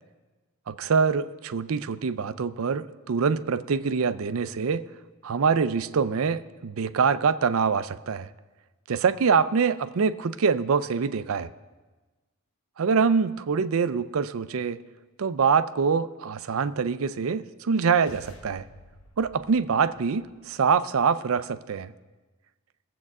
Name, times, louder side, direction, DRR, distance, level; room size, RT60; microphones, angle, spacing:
voice 1, 0.7-4.8 5.2-8.3 8.9-11.5 12.8-14.8 15.2-18.6 19.2-21.9, right 5 dB, 65° right, 14 dB, 0.4 m, -25 dB
sound 1, 17.7-20.5, left 2 dB, 85° left, 1.1 m, -51 dB
20.0 x 7.8 x 3.6 m, 1.2 s
head